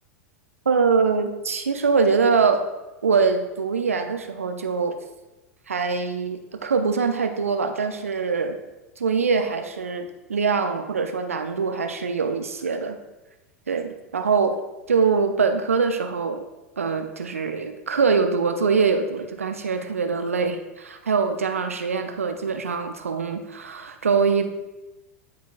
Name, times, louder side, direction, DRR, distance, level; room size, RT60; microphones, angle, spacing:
voice 1, 0.7-2.6 3.0-5.0 5.7-8.6 9.0-13.0 13.7-14.6 14.9-16.4 16.8-24.5, right 5 dB, 75° right, 6 dB, 0.5 m, -23 dB
12.5 x 4.6 x 2.5 m, 1.1 s
figure-of-eight pair, 90°, 8 cm